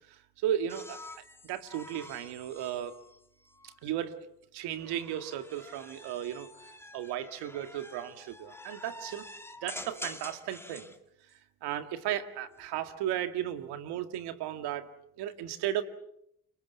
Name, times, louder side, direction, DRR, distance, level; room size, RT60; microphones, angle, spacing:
voice 1, 0.1-3.0 3.6-4.3 4.5-6.5 6.9-9.3 9.6-10.9 11.6-14.9 15.2-15.8, right 11 dB, 85° right, 9 dB, 2.1 m, -35 dB
sound 1, 0.7-4.0 4.8-11.0 12.4-13.0, left 1 dB, 5° left, 2.5 m, -48 dB
30.0 x 22.5 x 7.0 m, 0.74 s
supercardioid pair, 60°, 39 cm